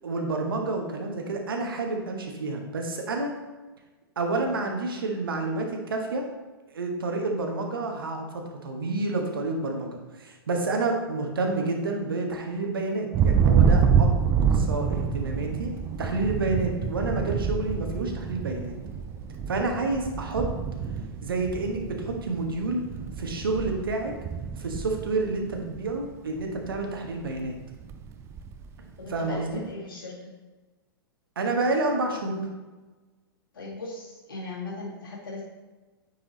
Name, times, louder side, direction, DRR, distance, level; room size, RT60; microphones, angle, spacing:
voice 1, 0.0-3.4 4.2-6.3 6.7-14.1 14.5-15.7 16.0-18.7 19.5-20.5 21.2-22.8 23.2-24.1 24.6-27.5 29.1-29.6 31.4-32.5, right 3 dB, 65° right, 2 dB, 1.2 m, -29 dB
Thunder, 13.1-26.0 26.4-26.9 27.2-28.7, right 6 dB, 20° right, 0.4 m, -27 dB
voice 2, 29.0-30.4 33.5-35.4, left 3 dB, 60° left, -5 dB, 2.2 m, -38 dB
9.8 x 4.7 x 3.1 m, 1.2 s
figure-of-eight pair, 105°, 13 cm